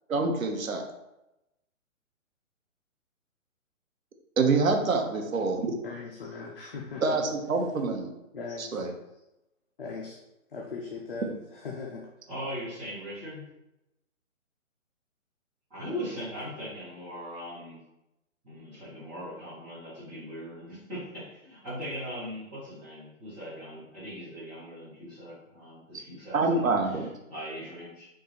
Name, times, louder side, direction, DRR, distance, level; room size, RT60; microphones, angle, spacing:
voice 1, 0.1-0.8 4.4-5.7 7.0-8.1 8.6-8.9 26.3-27.1, right 3 dB, 75° right, 3 dB, 1.1 m, -26 dB
voice 2, 5.8-7.2 8.3-8.8 9.8-10.2 10.5-12.1, left 4 dB, 40° left, -2 dB, 0.7 m, -39 dB
voice 3, 12.3-13.4 15.7-17.8 18.4-28.1, equal, 10° right, -13 dB, 1.1 m, -40 dB
4.8 x 2.7 x 3.9 m, 0.91 s
hypercardioid pair, 165°, 41 cm